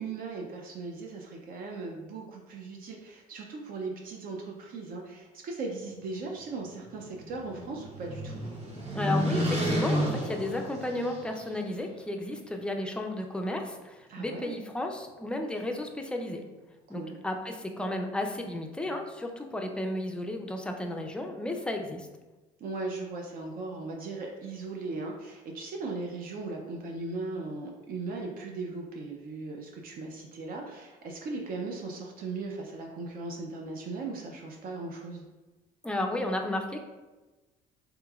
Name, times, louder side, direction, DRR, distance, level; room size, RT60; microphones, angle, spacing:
voice 1, 0.0-8.5 14.1-14.5 16.9-17.2 22.6-35.2, right 3 dB, 60° right, 1 dB, 0.5 m, -38 dB
sound 1, 6.7-11.5, equal, 35° right, 0.9 m, -31 dB
voice 2, 8.9-16.4 16.9-22.1 35.8-36.9, left 1 dB, 5° left, 3 dB, 0.3 m, -33 dB
3.4 x 3.0 x 2.3 m, 1.2 s
cardioid pair, 110°, 17 cm